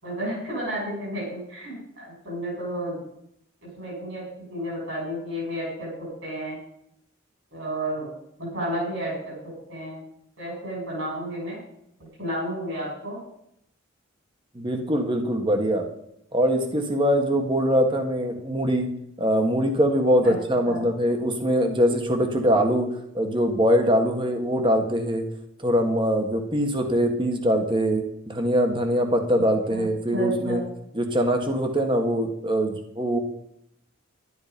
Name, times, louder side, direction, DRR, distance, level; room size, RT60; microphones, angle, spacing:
voice 1, 0.0-3.0 3.6-4.2 4.5-6.6 7.5-8.1 8.4-9.3 9.7-10.0 10.4-11.6 12.2-13.2 20.2-20.3 20.6-20.8 29.7-29.9 30.1-30.6, right 1 dB, 65° right, -5 dB, 6.8 m, -31 dB
voice 2, 14.6-15.9 16.3-18.9 19.2-22.9 23.1-25.3 25.6-30.6 31.0-33.2, equal, 25° right, 4 dB, 1.7 m, -23 dB
12.0 x 11.5 x 5.3 m, 0.74 s
head